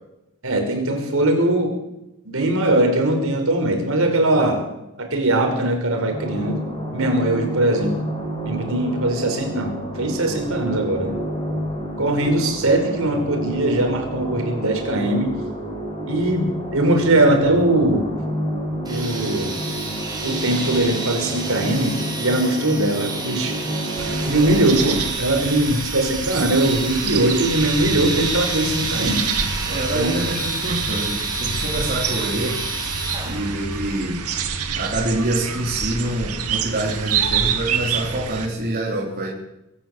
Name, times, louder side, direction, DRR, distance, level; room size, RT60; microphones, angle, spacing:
voice 1, 0.4-1.7 2.3-4.6 5.0-6.6 6.9-7.9 8.4-9.7 10.0-11.2 12.0-15.3 16.0-18.1 18.9-19.6 20.2-23.5 24.3-29.2 29.9-30.1, right 1 dB, 65° right, 3 dB, 5.5 m, -20 dB
sound 1, 6.1-25.0, right 1 dB, 25° left, 6.1 m, -29 dB
sound 2, 18.8-33.6, right 4 dB, 20° right, 5.9 m, -29 dB
sound 3, 24.0-38.5, right 5 dB, 90° right, 2.4 m, -28 dB
voice 2, 29.7-32.6 33.2-34.2 34.8-39.3, right 1 dB, 40° right, -3 dB, 4.2 m, -26 dB
25.0 x 13.0 x 8.0 m, 0.92 s
head